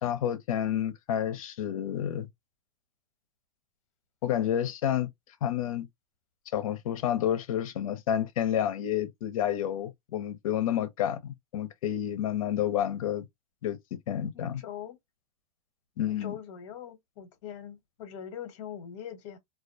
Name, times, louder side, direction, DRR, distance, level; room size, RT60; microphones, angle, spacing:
voice 1, 0.0-2.3 4.2-5.1 5.4-5.9 6.5-13.3 13.6-14.6 16.0-16.3, left 10 dB, 75° left, 0.7 m, -30 dB
voice 2, 14.3-15.0 16.1-19.4, left 9 dB, 55° left, 1.0 m, -42 dB
2.3 x 2.1 x 2.6 m
supercardioid pair, 160°, 18 cm